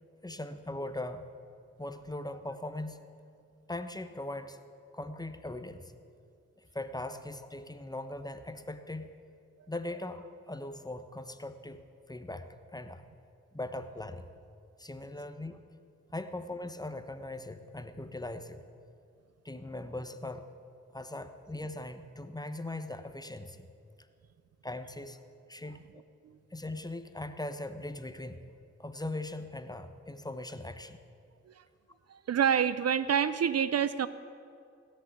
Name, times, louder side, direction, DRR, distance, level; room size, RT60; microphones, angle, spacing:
voice 1, 0.2-1.3 1.8-3.0 3.7-4.6 4.9-5.9 6.6-9.1 9.7-11.8 12.1-13.0 13.5-14.3 14.8-15.6 16.1-18.6 19.4-20.5 20.9-23.7 24.6-25.2 25.5-25.8 26.5-28.4 28.8-31.0, left 1 dB, 15° left, 9 dB, 1.0 m, -40 dB
voice 2, 32.1-34.1, right 8 dB, 60° right, 15 dB, 0.5 m, -27 dB
17.5 x 6.7 x 9.4 m, 2.4 s
cardioid pair, 50°, 29 cm